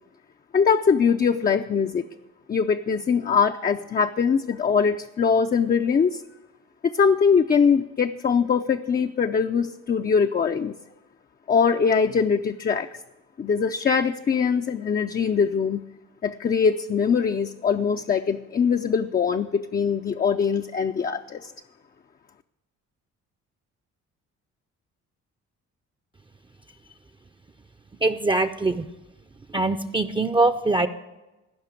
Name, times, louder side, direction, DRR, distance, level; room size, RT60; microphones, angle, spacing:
voice 1, 0.5-2.0 2.5-6.2 6.8-10.8 11.5-12.9 13.4-15.8 16.2-21.5, left 6 dB, 30° left, 5 dB, 0.5 m, -22 dB
voice 2, 28.0-28.8 29.5-30.9, right 2 dB, 15° right, 7 dB, 0.6 m, -22 dB
15.5 x 5.7 x 8.3 m, 1.0 s
cardioid pair, 90°, 30 cm